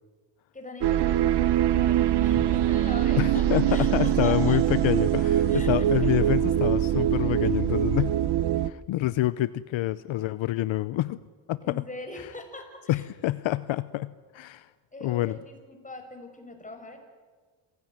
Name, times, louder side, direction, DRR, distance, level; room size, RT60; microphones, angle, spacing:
voice 1, 0.5-4.6 5.5-6.1 11.6-13.0 14.9-17.0, left 2 dB, 15° left, 4 dB, 5.6 m, -41 dB
sound 1, 0.8-8.7, right 12 dB, 55° right, 1.0 m, -23 dB
voice 2, 3.2-8.2 8.6-11.2 11.5-11.8 12.9-14.7 15.0-15.4, left 15 dB, 70° left, 16 dB, 0.8 m, -27 dB
27.5 x 16.5 x 9.4 m, 1.5 s
cardioid pair, 110°, 48 cm